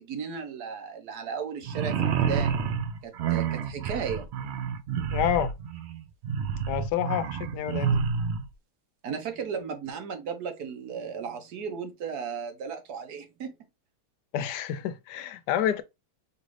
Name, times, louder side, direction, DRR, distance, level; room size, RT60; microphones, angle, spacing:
voice 1, 0.0-2.6 3.0-4.3 7.8-7.9 9.0-13.5, right 6 dB, 70° right, 1.4 m, -35 dB
sound 1, 1.6-8.5, right 7 dB, 90° right, 0.5 m, -29 dB
voice 2, 5.1-5.5 6.7-8.0 14.3-15.8, left 10 dB, 80° left, 1.2 m, -28 dB
5.1 x 2.5 x 3.1 m
omnidirectional pair, 1.8 m